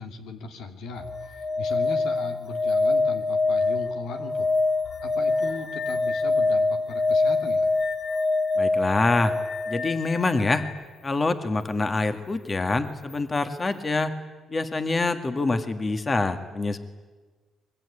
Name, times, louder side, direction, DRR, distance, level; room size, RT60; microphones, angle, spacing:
voice 1, 0.0-4.5 5.0-7.7, left 4 dB, 85° left, 6 dB, 2.7 m, -38 dB
sound 1, 1.0-10.8 13.1-13.2, left 3 dB, 55° left, 2.6 m, -25 dB
voice 2, 8.6-9.4 9.7-10.6 11.0-14.1 14.5-16.8, left 3 dB, 30° left, 9 dB, 1.8 m, -25 dB
23.5 x 22.5 x 10.0 m, 1.3 s
cardioid pair, 90°, 0 cm